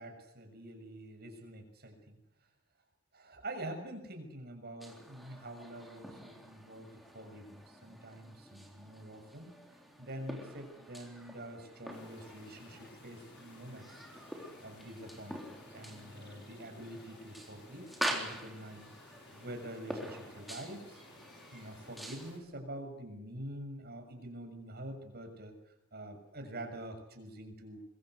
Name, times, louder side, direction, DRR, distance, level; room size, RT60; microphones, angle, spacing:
voice 1, 0.0-2.2 3.1-9.6 10.0-14.0 14.6-21.0 21.5-25.6 25.9-27.8, right 1 dB, 50° right, 5 dB, 6.7 m, -46 dB
sound 1, 4.8-22.3, right 1 dB, ahead, 3.8 m, -45 dB
sound 2, 11.9-22.4, left 2 dB, 55° left, 7.1 m, -57 dB
25.5 x 22.5 x 8.2 m, 0.80 s
head